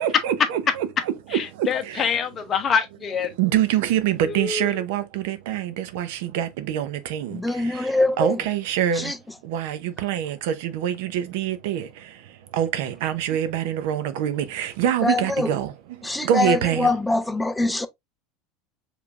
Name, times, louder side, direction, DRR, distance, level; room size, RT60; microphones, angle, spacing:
voice 1, 0.0-2.3 3.4-9.1 9.4-17.0 17.6-17.9, right 10 dB, 75° right, 0.6 m, -26 dB
voice 2, 1.3-3.3 4.3-4.7, left 7 dB, 30° left, 0.8 m, -25 dB
voice 3, 7.3-8.4 9.0-9.2 15.0-15.5 16.0-17.9, left 2 dB, 5° left, 0.4 m, -23 dB
5.0 x 3.2 x 2.4 m
supercardioid pair, 145°, 0 cm